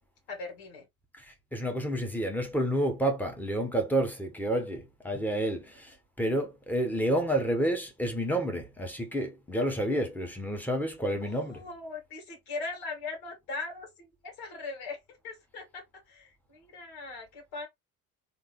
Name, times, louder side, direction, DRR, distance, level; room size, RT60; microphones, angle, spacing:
voice 1, 0.3-0.9 11.2-17.7, left 3 dB, 55° left, 2.6 m, -40 dB
voice 2, 1.5-11.6, right 1 dB, 5° left, 1.4 m, -29 dB
3.7 x 2.9 x 3.5 m
figure-of-eight pair, 65°, 45 cm